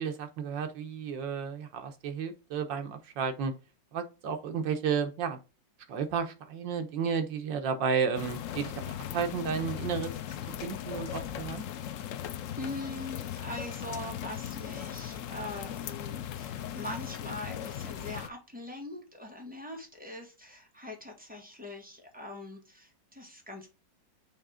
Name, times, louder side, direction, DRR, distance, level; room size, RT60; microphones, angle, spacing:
voice 1, 0.0-3.5 3.9-5.4 5.9-8.8 9.1-10.1 10.6-11.6, right 6 dB, 75° right, 1.7 m, -32 dB
sound 1, 8.2-18.3, left 10 dB, 85° left, 0.7 m, -38 dB
voice 2, 12.6-23.7, left 1 dB, 5° right, 1.5 m, -42 dB
6.4 x 3.2 x 5.0 m
omnidirectional pair, 2.0 m